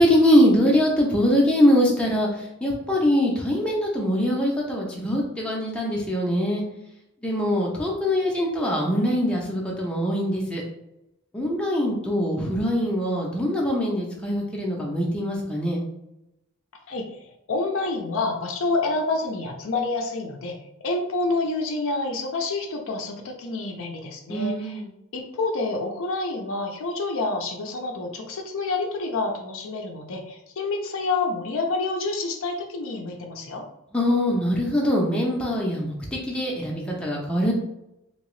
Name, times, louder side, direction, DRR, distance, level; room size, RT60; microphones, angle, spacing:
voice 1, 0.0-2.3 2.6-6.6 7.2-10.6 11.3-15.8 24.3-24.9 33.9-36.0 36.3-37.5, equal, 5° left, -3 dB, 0.5 m, -22 dB
voice 2, 17.5-20.6 20.8-24.8 25.1-33.6, left 3 dB, 60° left, 2 dB, 0.5 m, -28 dB
2.9 x 2.8 x 3.1 m, 0.87 s
head